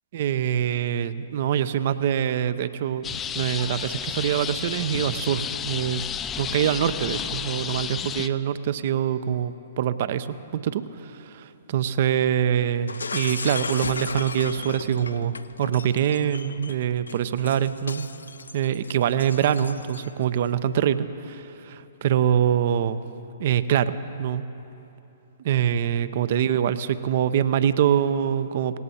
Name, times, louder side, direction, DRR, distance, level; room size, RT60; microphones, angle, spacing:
voice 1, 0.1-3.1 3.3-6.0 6.4-10.3 10.5-18.1 18.5-23.0 23.4-24.5 25.4-28.8, right 9 dB, 55° right, 14 dB, 0.6 m, -24 dB
sound 1, 3.0-8.3, left 8 dB, 20° left, 0.5 m, -32 dB
Shatter, 12.9-20.2, left 4 dB, 80° left, 0.6 m, -35 dB
18.5 x 17.5 x 4.2 m, 2.9 s
figure-of-eight pair, 120°, 0 cm